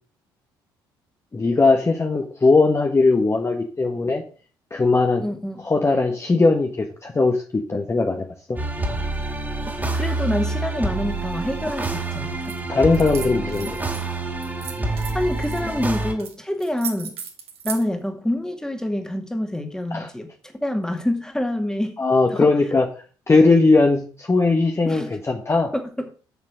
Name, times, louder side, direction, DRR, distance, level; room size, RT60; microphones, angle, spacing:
voice 1, 1.3-4.2 4.7-5.2 5.6-8.6 12.7-13.8 19.9-20.1 22.0-22.8 23.3-25.7, left 3 dB, 25° left, 2 dB, 1.3 m, -19 dB
voice 2, 5.2-5.7 9.9-12.6 15.1-17.1 17.6-20.3 20.5-21.9 22.3-22.5 24.9-25.1 25.7-26.1, left 1 dB, 5° left, 5 dB, 2.1 m, -26 dB
sound 1, 8.6-16.1, right 2 dB, 15° right, 2.5 m, -27 dB
sound 2, 12.4-12.6 12.9-14.0 14.4-15.6 16.2-16.3 16.6-17.8, right 7 dB, 60° right, 2.0 m, -35 dB
7.0 x 6.6 x 6.3 m, 0.38 s
hypercardioid pair, 50°, 12 cm